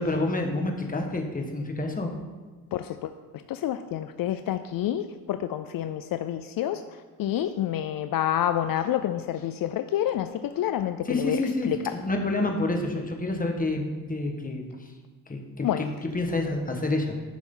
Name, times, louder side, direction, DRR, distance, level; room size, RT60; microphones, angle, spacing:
voice 1, 0.0-2.1 11.1-14.9 15.3-15.9 16.1-17.2, left 2 dB, 25° left, 2 dB, 1.5 m, -28 dB
voice 2, 2.7-11.4 11.7-11.9 15.6-15.9, left 11 dB, 70° left, 10 dB, 0.5 m, -28 dB
11.0 x 6.2 x 3.9 m, 1.4 s
cardioid pair, 70°, 36 cm